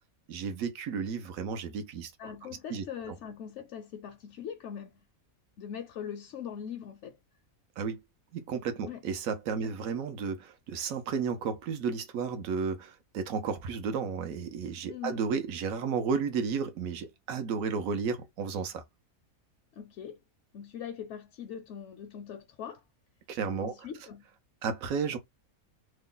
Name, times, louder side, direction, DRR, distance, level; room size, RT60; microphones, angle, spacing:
voice 1, 0.3-3.2 7.8-8.0 8.3-18.8 23.3-23.7 24.6-25.2, right 6 dB, 75° right, 1.1 m, -33 dB
voice 2, 2.2-5.0 5.6-7.2 8.9-9.0 9.6-9.7 14.9-15.2 19.7-20.2 20.5-22.8 23.6-24.3, left 8 dB, 65° left, 0.8 m, -41 dB
3.0 x 2.2 x 3.7 m
omnidirectional pair, 1.5 m